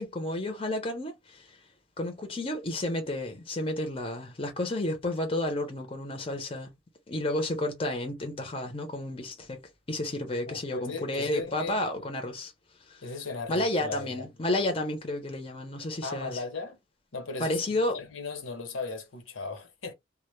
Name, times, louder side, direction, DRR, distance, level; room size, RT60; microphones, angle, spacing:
voice 1, 0.0-1.6 2.0-6.7 7.1-9.6 9.9-12.5 12.9-13.0 13.5-16.4 17.4-18.0, left 1 dB, 30° left, 0.6 m, -31 dB
voice 2, 10.5-11.9 13.0-14.3 16.0-16.8 17.1-19.9, left 4 dB, 85° left, 0.8 m, -37 dB
2.2 x 2.1 x 3.0 m
head